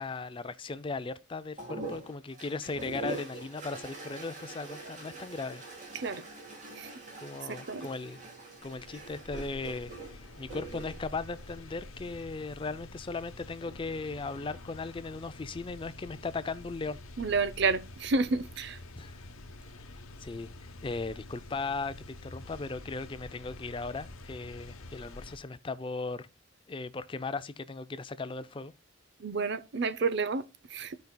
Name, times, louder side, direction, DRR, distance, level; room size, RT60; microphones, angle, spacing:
voice 1, 0.0-5.6 5.9-6.1 7.2-8.2 8.6-17.0 19.0-19.2 20.2-26.3 26.7-28.7, left 3 dB, 25° left, 0.4 m, -37 dB
sound 1, 1.6-12.3 13.4-14.0, right 2 dB, 35° right, 2.6 m, -44 dB
voice 2, 7.5-7.9 17.2-18.8 29.2-31.0, right 4 dB, 55° right, 0.6 m, -30 dB
sound 2, 8.6-25.4, left 2 dB, 85° left, 0.9 m, -48 dB
14.5 x 5.3 x 2.2 m
head